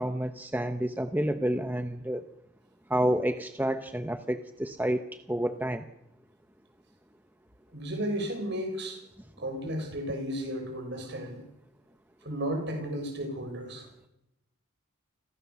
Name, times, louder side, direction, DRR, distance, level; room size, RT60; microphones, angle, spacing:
voice 1, 0.0-2.2 2.9-5.8, right 1 dB, 10° right, 8 dB, 0.9 m, -29 dB
voice 2, 7.7-9.0 9.4-11.4 12.2-13.9, equal, 55° right, 5 dB, 6.6 m, -33 dB
29.5 x 22.0 x 7.1 m, 0.87 s
head